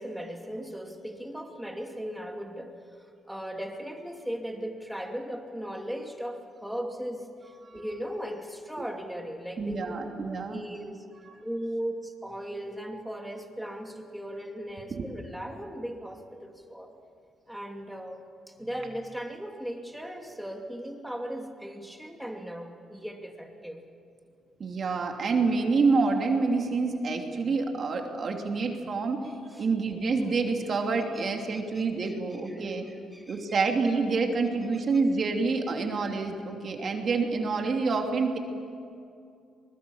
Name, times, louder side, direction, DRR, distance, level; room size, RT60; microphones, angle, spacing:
voice 1, 0.0-9.9 10.4-11.0 11.4-16.9 17.5-23.8 29.5-29.6 31.5-32.1 32.4-33.4, equal, ahead, 3 dB, 2.8 m, -38 dB
voice 2, 9.6-10.6 11.2-11.4 14.9-15.0 24.6-32.8 33.3-38.4, right 4 dB, 50° right, 3 dB, 2.8 m, -27 dB
24.0 x 21.0 x 7.2 m, 2.5 s
cardioid pair, 90°, 0 cm